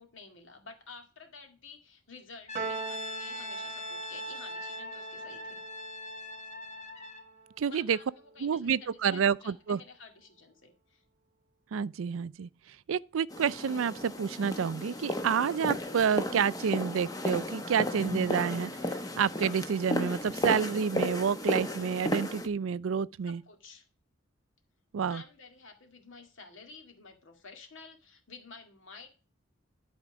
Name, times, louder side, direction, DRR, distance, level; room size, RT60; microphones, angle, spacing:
voice 1, 0.0-5.6 7.7-11.0 23.3-23.9 25.1-29.1, left 4 dB, 70° left, 2.1 m, -51 dB
Brass instrument, 2.5-7.3, left 2 dB, 35° left, 1.4 m, -41 dB
Piano, 2.5-9.1, right 5 dB, 40° right, 0.9 m, -43 dB
voice 2, 7.6-8.0 8.4-9.8 11.7-12.5 12.9-18.7 19.2-23.4 24.9-25.2, right 7 dB, 85° right, 0.4 m, -29 dB
sound 1, 13.3-22.5, left 1 dB, 20° left, 0.9 m, -34 dB
12.0 x 4.4 x 5.0 m
head